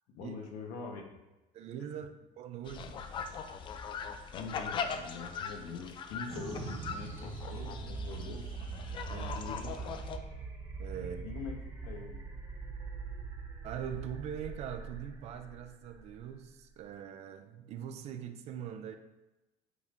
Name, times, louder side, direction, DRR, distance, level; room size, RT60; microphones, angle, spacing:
voice 1, 0.1-1.0 4.3-8.5 9.1-9.9 11.2-11.5 11.8-12.2, left 5 dB, 75° left, 2 dB, 1.3 m, -44 dB
voice 2, 1.5-3.1 9.1-9.4 10.8-11.3 13.6-19.0, right 9 dB, 45° right, 8 dB, 0.5 m, -42 dB
sound 1, 2.7-10.2, left 6 dB, 35° left, 0.4 m, -41 dB
sound 2, 6.3-16.9, right 4 dB, 20° right, 1.0 m, -42 dB
8.6 x 5.3 x 2.6 m, 1.0 s
cardioid pair, 165°, 15 cm